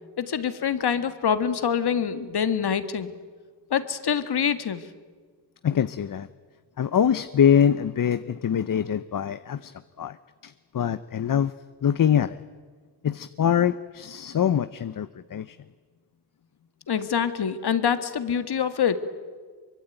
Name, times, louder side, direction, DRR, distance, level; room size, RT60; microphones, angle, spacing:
voice 1, 0.2-3.1 3.7-4.9 16.9-19.0, left 7 dB, 70° left, 11 dB, 1.8 m, -25 dB
voice 2, 5.6-6.3 6.8-9.7 10.0-10.2 10.4-11.5 11.8-12.4 13.0-15.6, left 8 dB, 55° left, 13 dB, 0.8 m, -23 dB
24.0 x 24.0 x 9.2 m, 1.5 s
wide cardioid pair, 95°, 40 cm